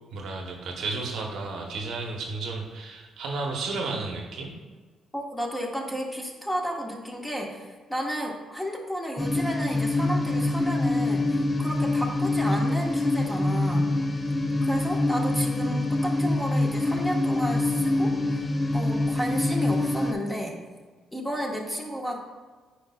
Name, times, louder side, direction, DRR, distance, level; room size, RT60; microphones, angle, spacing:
voice 1, 0.1-4.6, right 3 dB, 75° right, 1 dB, 0.9 m, -33 dB
voice 2, 5.1-13.9 14.6-18.5 18.7-20.6 21.1-22.2, equal, 5° left, 0 dB, 1.3 m, -32 dB
sound 1, 9.2-20.1, left 2 dB, 25° left, 0.6 m, -25 dB
9.2 x 4.6 x 2.3 m, 1.4 s
supercardioid pair, 65°, 0 cm